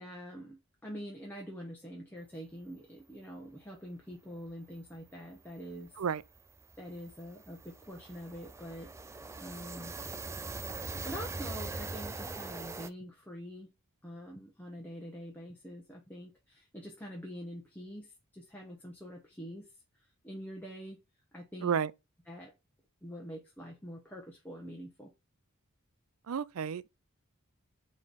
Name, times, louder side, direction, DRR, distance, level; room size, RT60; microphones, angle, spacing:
voice 1, 0.0-5.9 6.8-8.9 9.4-9.9 11.0-13.7 14.0-19.7 20.2-21.0 21.3-21.8 22.3-22.5 23.0-25.1, equal, 10° left, 1.0 m, -45 dB
sound 1, 4.5-4.6 4.9-5.1 5.4-12.9, right 3 dB, 15° right, 0.3 m, -42 dB
voice 2, 21.6-21.9 26.3-26.9, right 7 dB, 75° right, 0.5 m, -31 dB
8.8 x 3.2 x 4.1 m
head